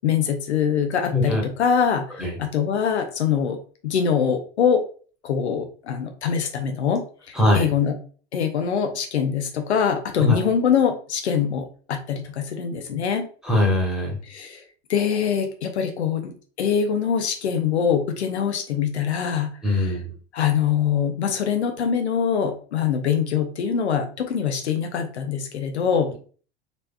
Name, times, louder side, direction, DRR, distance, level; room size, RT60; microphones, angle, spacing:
voice 1, 0.0-3.6 3.8-4.8 5.2-8.0 8.3-13.2 14.2-14.6 14.9-20.0 20.3-26.1, left 7 dB, 70° left, 5 dB, 0.6 m, -24 dB
voice 2, 7.3-7.7 10.2-10.4 13.4-14.1 19.6-20.1, left 1 dB, ahead, -2 dB, 1.3 m, -21 dB
3.9 x 3.2 x 2.2 m, 0.41 s
figure-of-eight pair, 75°, 34 cm